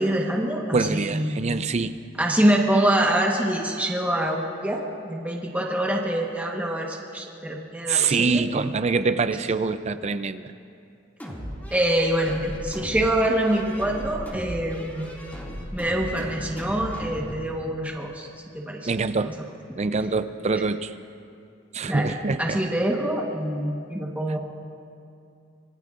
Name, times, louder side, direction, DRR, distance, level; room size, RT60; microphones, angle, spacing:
voice 1, 0.0-1.4 2.2-8.4 11.7-15.1 15.7-18.3 18.5-18.9 19.2-19.3 21.9-24.4, right 1 dB, 10° right, -1 dB, 1.2 m, -25 dB
voice 2, 0.7-1.9 7.9-10.5 18.9-19.3 19.7-20.9 21.7-22.6, right 4 dB, 35° right, 11 dB, 0.5 m, -25 dB
sound 1, 11.2-17.4, equal, 10° left, 2.3 m, -37 dB
25.5 x 19.5 x 2.5 m, 2.5 s
head